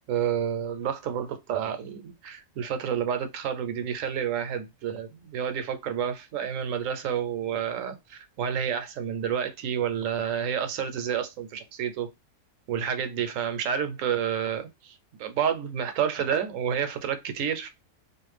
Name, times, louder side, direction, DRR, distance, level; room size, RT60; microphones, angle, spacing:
voice 1, 0.1-12.1 12.7-17.7, right 8 dB, 75° right, 0.9 m, -29 dB
2.5 x 2.2 x 3.1 m
omnidirectional pair, 1.4 m